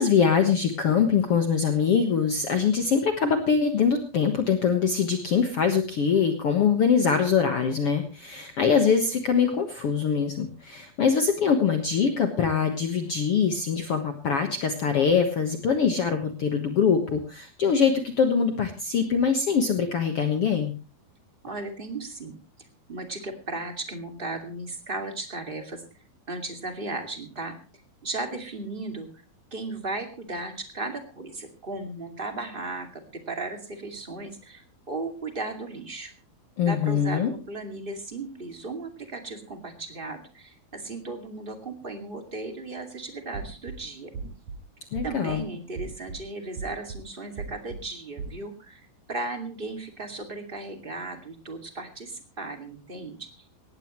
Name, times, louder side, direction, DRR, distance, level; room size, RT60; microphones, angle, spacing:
voice 1, 0.0-20.7 36.6-37.3 44.9-45.4, left 6 dB, 55° left, 6 dB, 1.8 m, -23 dB
voice 2, 21.4-22.4 22.9-25.8 26.3-27.5 28.0-29.1 29.5-36.1 36.6-44.1 45.0-53.4, right 2 dB, 20° right, 5 dB, 1.8 m, -36 dB
sound 1, 43.3-43.8 44.1-44.6 44.9-45.4 45.7-46.2 46.6-47.0 47.4-47.8 48.2-48.4, right 4 dB, 55° right, 2.6 m, -36 dB
18.5 x 15.5 x 3.1 m, 0.33 s
omnidirectional pair, 4.2 m